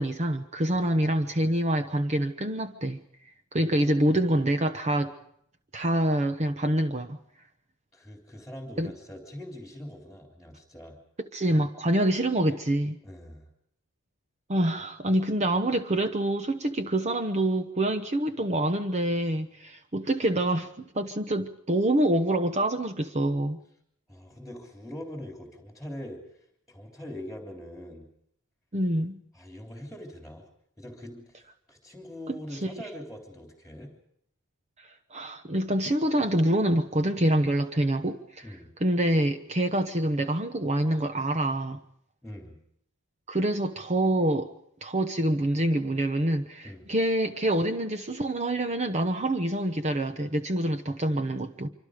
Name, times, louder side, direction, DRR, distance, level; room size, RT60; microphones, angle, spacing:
voice 1, 0.0-3.0 3.5-5.2 5.7-7.2 8.8-8.9 11.3-13.0 14.5-23.6 28.7-29.2 32.3-32.7 34.8-38.4 38.8-41.8 43.3-44.5 44.8-51.7, right 1 dB, 30° right, 1.0 m, -26 dB
voice 2, 7.9-11.0 13.0-13.5 24.1-26.2 26.7-28.1 29.3-30.4 30.8-31.4 31.7-33.9 38.4-38.7 42.2-42.6 46.6-46.8, left 1 dB, ahead, 3.3 m, -42 dB
25.5 x 25.5 x 5.1 m
head